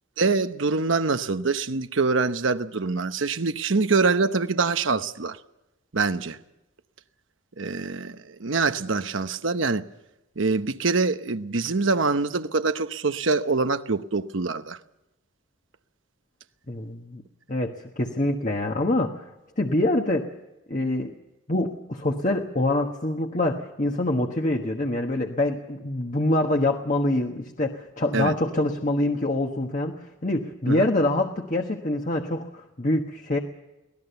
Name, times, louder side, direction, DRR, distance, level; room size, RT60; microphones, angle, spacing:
voice 1, 0.2-5.4 5.9-6.4 7.6-9.9 10.4-14.8 28.1-28.3 30.7-30.9, right 4 dB, 75° right, 1.0 m, -24 dB
voice 2, 16.7-17.2 17.5-19.2 19.6-20.3 20.7-21.1 21.5-33.4, left 1 dB, 40° left, 1.4 m, -25 dB
24.0 x 18.5 x 7.0 m
head